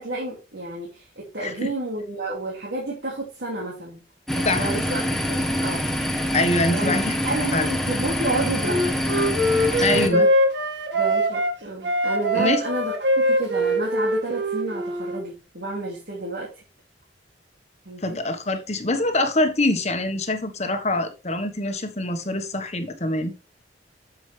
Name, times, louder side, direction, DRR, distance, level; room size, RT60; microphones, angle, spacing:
voice 1, 0.0-4.0 4.3-5.0 5.3-5.8 6.7-7.0 7.2-10.3 10.9-16.5 17.8-18.2, right 2 dB, 65° right, 2.7 m, -31 dB
sound 1, 4.3-10.1, equal, ahead, 1.1 m, -25 dB
voice 2, 6.3-7.1 7.5-7.7 9.8-10.3 12.3-12.6 18.0-23.3, left 2 dB, 40° left, 1.4 m, -24 dB
Wind instrument woodwind instrument, 8.6-11.5 11.8-15.2, equal, 80° right, 2.0 m, -22 dB
7.8 x 7.3 x 3.4 m
head